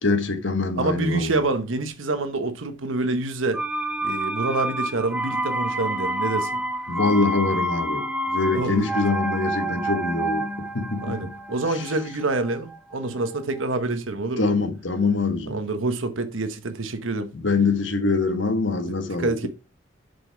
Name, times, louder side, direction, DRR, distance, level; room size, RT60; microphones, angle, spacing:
voice 1, 0.0-1.5 6.9-8.0 8.3-11.2 11.7-11.8 14.4-15.6 17.3-19.5, left 3 dB, 70° left, 1.3 m, -24 dB
voice 2, 0.8-3.6 4.0-6.6 8.5-8.9 11.0-14.5 15.5-17.3 18.9-19.5, right 2 dB, 80° right, 1.1 m, -27 dB
sound 1, 3.5-13.3 13.6-13.7, right 1 dB, 5° right, 0.5 m, -28 dB
7.7 x 5.3 x 4.6 m
head